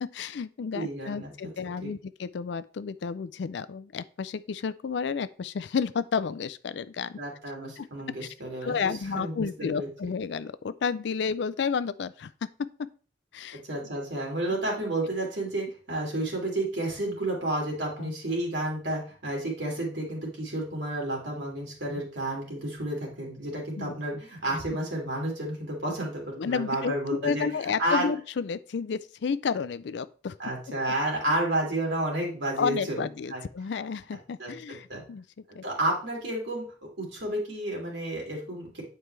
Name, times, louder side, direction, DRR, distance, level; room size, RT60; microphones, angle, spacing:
voice 1, 0.0-7.2 7.8-7.9 8.2-8.3 8.6-12.7 13.3-13.6 14.5-14.6 18.0-18.1 21.9-22.0 23.8-24.0 26.4-30.4 32.6-35.2 35.5-35.6, left 5 dB, 65° left, 0.4 m, -31 dB
voice 2, 0.7-1.3 1.8-1.9 7.2-8.7 9.1-9.9 13.6-27.4 27.8-28.1 30.4-33.4 34.4-34.5 34.9-35.0 35.6-38.8, right 1 dB, 70° right, 2.7 m, -31 dB
9.3 x 4.6 x 3.3 m
head